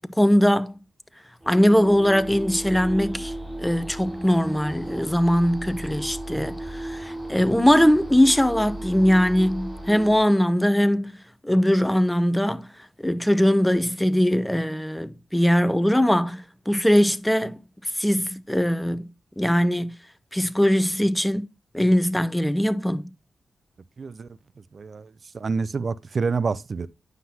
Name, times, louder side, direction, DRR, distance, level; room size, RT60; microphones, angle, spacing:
voice 1, 0.2-0.7 1.5-3.3 3.6-11.1 11.4-12.7 13.0-17.6 18.0-19.1 19.4-19.9 20.3-21.4 21.7-23.1, equal, 5° left, 0.7 m, -21 dB
sound 1, 1.4-10.2, right 1 dB, 20° right, 4.7 m, -35 dB
voice 2, 24.0-24.3 24.7-25.1 25.3-26.9, right 4 dB, 55° right, 0.4 m, -27 dB
9.2 x 5.9 x 2.8 m
supercardioid pair, 45°, 0 cm